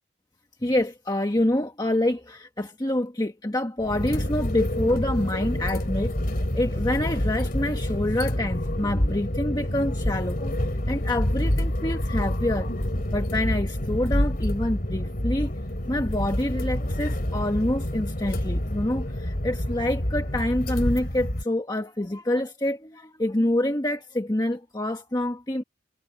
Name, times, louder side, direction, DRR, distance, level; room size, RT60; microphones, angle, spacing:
voice 1, 0.6-12.7 13.1-15.5 15.9-25.6, left 1 dB, 20° left, 1.3 m, -27 dB
sound 1, 3.8-21.4, left 1 dB, 50° left, 2.9 m, -27 dB
head